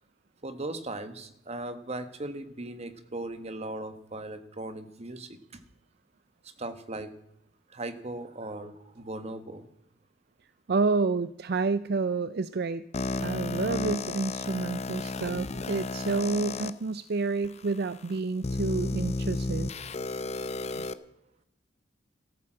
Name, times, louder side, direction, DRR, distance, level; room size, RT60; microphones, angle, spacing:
voice 1, 0.4-5.4 6.6-7.1 7.7-9.6 19.0-19.2 20.6-21.0, right 2 dB, 35° right, 10 dB, 1.4 m, -38 dB
voice 2, 10.7-12.9 13.2-19.7 20.8-20.9, right 4 dB, 60° right, 15 dB, 0.5 m, -29 dB
sound 1, 12.9-16.7 17.4-17.5 18.4-20.9, left 2 dB, 35° left, 0.7 m, -32 dB
14.0 x 13.5 x 7.6 m, 0.80 s
head